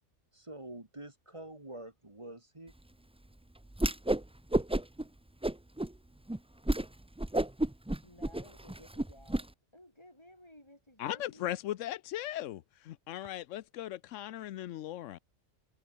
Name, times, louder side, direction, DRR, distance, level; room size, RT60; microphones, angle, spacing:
voice 1, 0.3-2.7, right 1 dB, 25° right, 2.1 m, -46 dB
Whoosh swoosh swish, 3.7-4.2 4.5-5.0 5.4-5.9 6.3-6.4 6.7-6.9 7.2-9.4, right 1 dB, 10° right, 0.3 m, -30 dB
voice 2, 8.0-11.6, left 1 dB, 20° left, 5.5 m, -57 dB
voice 3, 11.0-15.2, left 13 dB, 85° left, 1.0 m, -38 dB
omnidirectional pair, 1.3 m